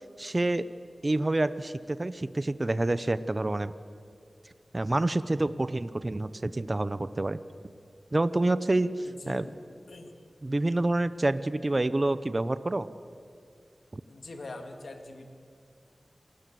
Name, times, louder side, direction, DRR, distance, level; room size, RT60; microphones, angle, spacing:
voice 1, 0.2-0.6 1.0-3.7 4.7-7.4 8.1-9.4 10.4-12.9 13.9-14.0, right 2 dB, 35° right, 14 dB, 0.8 m, -27 dB
voice 2, 9.0-9.5 9.9-10.1 14.1-15.3, left 2 dB, 80° left, 5 dB, 2.5 m, -43 dB
28.5 x 20.0 x 7.8 m, 2.3 s
wide cardioid pair, 75°, 0 cm